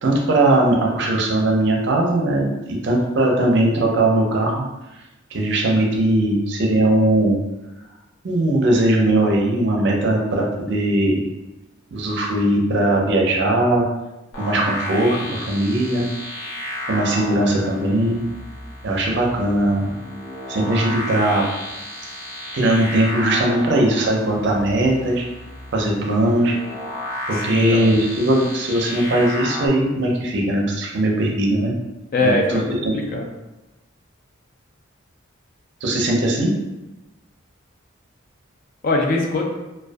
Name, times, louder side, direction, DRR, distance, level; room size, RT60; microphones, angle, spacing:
voice 1, 0.0-4.6 5.3-7.4 8.2-11.2 11.9-13.8 14.4-16.1 16.9-18.2 18.8-19.9 20.5-21.4 22.5-25.2 25.7-26.5 27.3-31.7 32.2-32.9 35.8-36.5, right 1 dB, 60° right, -1 dB, 0.5 m, -19 dB
sound 1, 14.3-29.7, left 1 dB, 80° left, 0.7 m, -32 dB
voice 2, 27.4-27.9 32.1-33.3 38.8-39.4, left 2 dB, 45° left, 0 dB, 0.4 m, -21 dB
2.5 x 2.2 x 2.2 m, 1.0 s
head